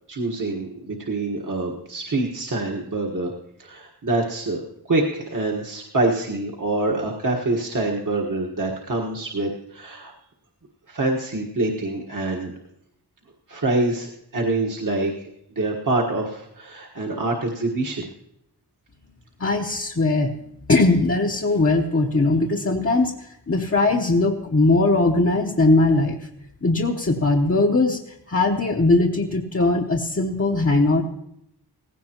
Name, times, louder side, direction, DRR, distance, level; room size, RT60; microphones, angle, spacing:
voice 1, 0.1-3.3 3.6-10.1 10.9-12.5 13.5-15.1 15.5-18.0, right 2 dB, 50° right, -2 dB, 1.5 m, -25 dB
voice 2, 19.4-20.3 20.7-26.2 26.6-28.0 28.3-31.0, left 2 dB, 35° left, 0 dB, 1.0 m, -20 dB
17.5 x 16.5 x 3.0 m, 0.81 s
wide cardioid pair, 75°, 39 cm